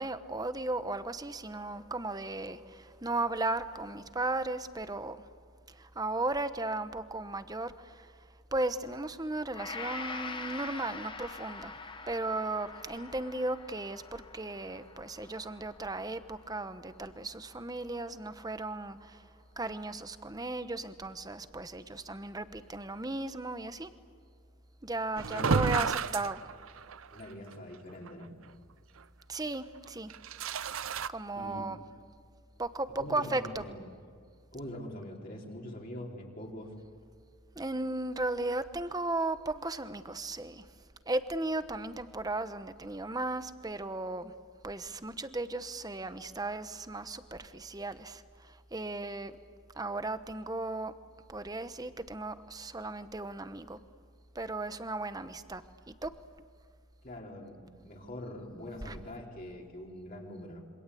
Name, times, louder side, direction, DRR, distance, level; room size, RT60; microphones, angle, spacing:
voice 1, 0.0-5.2 5.7-11.7 12.1-19.3 19.6-23.9 24.8-26.4 29.3-30.1 31.1-31.8 32.6-33.7 37.5-40.7 41.1-44.3 44.6-49.4 49.7-50.9 51.3-53.8 54.3-56.1 58.8-59.0, right 2 dB, 20° right, 11 dB, 1.0 m, -36 dB
Gong, 9.5-17.8 18.3-18.5, left 4 dB, 25° left, 1.4 m, -45 dB
sound 1, 25.2-27.1 27.5-27.6 28.1-28.2 30.1-31.1, right 5 dB, 70° right, 0.6 m, -31 dB
voice 2, 25.3-25.8 27.1-28.3 31.4-31.7 33.0-33.8 34.5-36.8 57.0-60.6, left 1 dB, 40° left, -2 dB, 4.0 m, -43 dB
27.0 x 25.0 x 8.4 m, 2.1 s
head